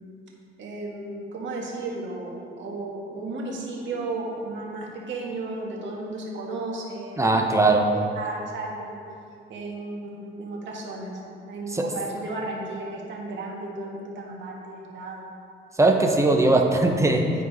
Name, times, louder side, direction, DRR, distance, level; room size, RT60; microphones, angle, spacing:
voice 1, 0.6-2.3 2.6-7.5 7.9-9.0 9.5-11.2 11.5-15.3, right 2 dB, 70° right, -2 dB, 1.6 m, -34 dB
voice 2, 7.2-7.9 11.7-11.8 15.8-17.2, right 2 dB, 15° right, 2 dB, 0.9 m, -19 dB
10.5 x 4.6 x 4.1 m, 2.3 s
cardioid pair, 90°, 20 cm